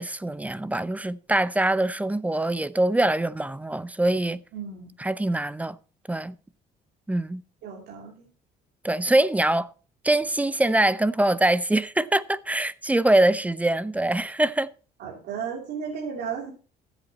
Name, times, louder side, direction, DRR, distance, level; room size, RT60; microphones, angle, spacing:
voice 1, 0.0-4.4 5.0-5.8 6.1-6.3 7.1-7.4 8.8-9.7 10.0-14.7, right 1 dB, 10° right, 0.5 m, -23 dB
voice 2, 4.5-4.9 7.6-8.3 15.0-16.5, right 7 dB, 75° right, 3.0 m, -34 dB
14.5 x 8.1 x 4.2 m
cardioid pair, 110°, 17 cm